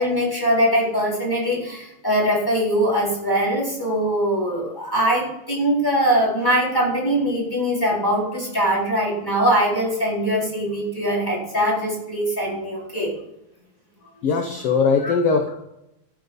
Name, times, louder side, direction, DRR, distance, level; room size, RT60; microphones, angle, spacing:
voice 1, 0.0-13.1 15.0-15.1, equal, 5° left, -3 dB, 4.0 m, -22 dB
voice 2, 14.2-15.5, left 5 dB, 65° left, 4 dB, 1.6 m, -20 dB
15.0 x 6.6 x 5.5 m, 0.84 s
omnidirectional pair, 3.8 m